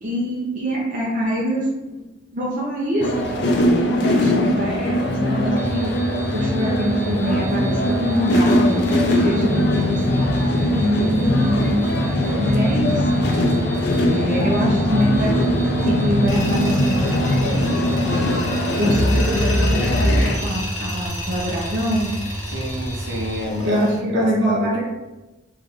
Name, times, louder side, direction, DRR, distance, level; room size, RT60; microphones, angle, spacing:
voice 1, 0.0-2.0 2.3-8.9 9.2-10.0 10.7-12.0 12.4-13.3 14.1-15.4 15.8-17.7 18.8-22.1 23.6-24.8, equal, 45° right, -6 dB, 0.7 m, -24 dB
sound 1, 3.0-20.4, left 1 dB, 60° left, 0.6 m, -20 dB
sound 2, 5.6-23.4, right 1 dB, 15° right, 0.3 m, -31 dB
Tools, 16.3-24.0, left 1 dB, 90° left, 1.2 m, -33 dB
voice 2, 22.5-24.8, equal, 65° right, -2 dB, 1.1 m, -28 dB
3.4 x 3.3 x 3.7 m, 1.1 s
head